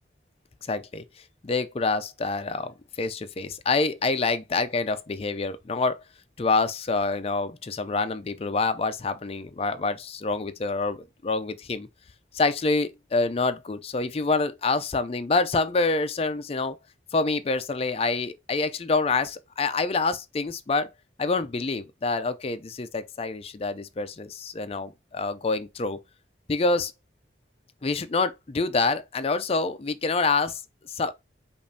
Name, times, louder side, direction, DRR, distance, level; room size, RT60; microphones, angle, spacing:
voice 1, 0.6-1.0 1.4-6.0 6.4-11.9 12.3-16.8 17.1-20.9 21.2-26.0 26.5-26.9 27.8-31.1, left 3 dB, 30° left, 0.4 m, -27 dB
5.2 x 2.5 x 2.7 m
head